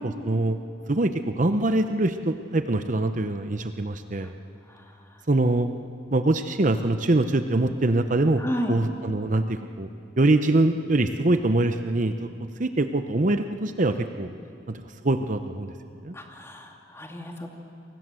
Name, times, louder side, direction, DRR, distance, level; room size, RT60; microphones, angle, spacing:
voice 1, 0.0-0.6 0.9-4.3 5.3-5.7 6.1-8.4 8.7-9.9 10.2-12.3 12.6-14.3 14.7-15.7 16.0-16.2, right 2 dB, 40° right, 8 dB, 0.8 m, -24 dB
voice 2, 8.4-8.7 16.1-17.5, equal, 15° left, 1 dB, 2.6 m, -32 dB
28.5 x 23.5 x 7.7 m, 2.5 s
head